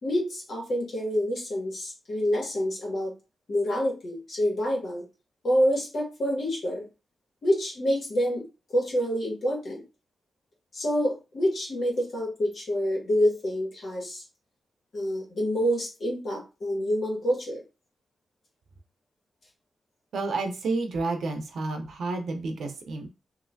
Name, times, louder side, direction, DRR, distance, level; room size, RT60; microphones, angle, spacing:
voice 1, 0.0-3.1 3.5-5.0 5.4-6.9 7.4-8.4 8.7-9.8 10.7-14.2 14.9-17.6, equal, 50° left, -2 dB, 1.5 m, -27 dB
voice 2, 20.1-23.1, right 3 dB, 80° right, 5 dB, 0.6 m, -30 dB
3.1 x 2.6 x 2.7 m, 0.29 s
wide cardioid pair, 150°, 0 cm